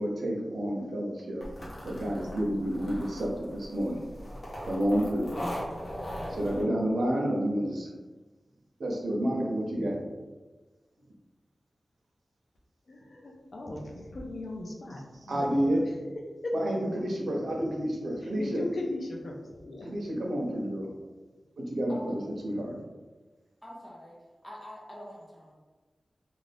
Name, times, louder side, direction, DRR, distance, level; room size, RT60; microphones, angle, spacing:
voice 1, 0.0-1.4 1.8-4.0 4.6-5.3 6.3-7.9 8.8-10.0 15.3-15.8 16.5-18.6 19.8-20.9 21.6-22.8, equal, 85° right, -1 dB, 0.6 m, -29 dB
sound 1, 1.4-6.6, equal, 60° left, 1.0 m, -39 dB
voice 2, 12.9-16.0 16.4-16.6 16.9-17.0 18.2-20.0, left 2 dB, 75° left, 0 dB, 0.6 m, -38 dB
voice 3, 23.6-25.5, equal, 20° left, -4 dB, 0.7 m, -46 dB
2.6 x 2.4 x 3.3 m, 1.3 s
wide cardioid pair, 60°, 0 cm